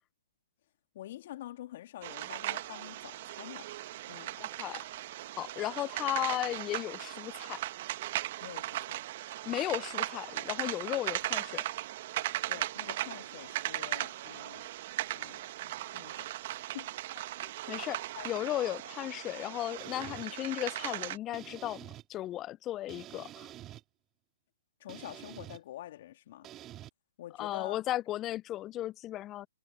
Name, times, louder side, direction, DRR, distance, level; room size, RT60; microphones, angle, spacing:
voice 1, 0.9-3.7 4.1-4.4 8.4-9.0 12.5-14.7 15.1-16.9 17.7-17.9 18.2-18.3 24.8-26.5 27.2-27.8, left 13 dB, 45° left, 2.4 m, -47 dB
sound 1, 2.0-21.2, right 15 dB, 40° right, 1.3 m, -38 dB
voice 2, 4.4-4.8 5.4-7.6 9.5-11.6 17.4-18.0 18.2-23.5 27.4-29.5, left 14 dB, 20° left, 0.5 m, -35 dB
sound 2, 19.8-20.3 21.3-22.0 22.9-23.8 24.9-25.6 26.4-26.9, right 13 dB, 20° right, 2.6 m, -47 dB
hypercardioid pair, 145°, 0 cm